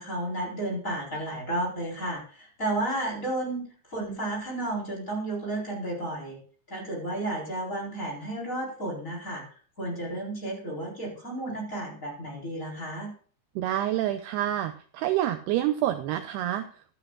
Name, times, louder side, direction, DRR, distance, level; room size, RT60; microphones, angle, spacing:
voice 1, 0.0-6.4 6.7-9.4 9.8-13.1, right 1 dB, 20° left, -1 dB, 4.1 m, -32 dB
voice 2, 13.6-16.7, right 12 dB, 80° right, 8 dB, 2.4 m, -27 dB
15.0 x 12.5 x 2.4 m, 0.43 s
omnidirectional pair, 5.1 m